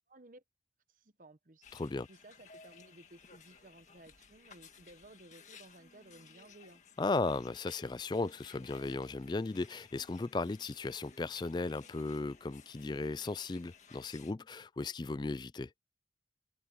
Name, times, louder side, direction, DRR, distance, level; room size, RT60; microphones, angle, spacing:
voice 1, 0.1-0.4 0.9-1.7 1.9-6.8, right 2 dB, 45° right, 0.9 m, -57 dB
sound 1, 1.6-14.3, left 6 dB, 40° left, 1.9 m, -58 dB
voice 2, 1.7-2.1 7.0-15.7, left 3 dB, 25° left, 0.3 m, -36 dB
head